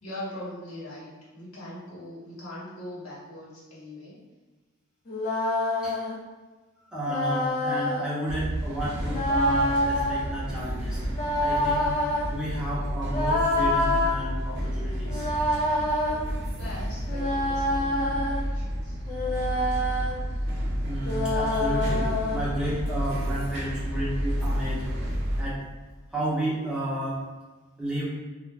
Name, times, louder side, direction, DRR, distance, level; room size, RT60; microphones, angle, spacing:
voice 1, 0.0-4.2 16.6-19.0, left 1 dB, 85° left, -7 dB, 1.0 m, -41 dB
sound 1, 5.1-6.1 7.1-8.0 9.1-10.3 11.1-12.3 13.1-14.2 15.1-16.2 17.1-18.4 19.1-20.1 21.1-22.5, left 1 dB, 40° left, 0.5 m, -26 dB
voice 2, 6.9-11.0 11.4-11.9 12.3-15.3 20.8-24.9 25.4-25.6 26.1-27.2 27.8-28.1, right 1 dB, 5° right, -8 dB, 0.7 m, -32 dB
sound 2, 8.3-25.4, equal, 55° right, 0.6 m, -31 dB
2.5 x 2.1 x 3.2 m, 1.3 s
head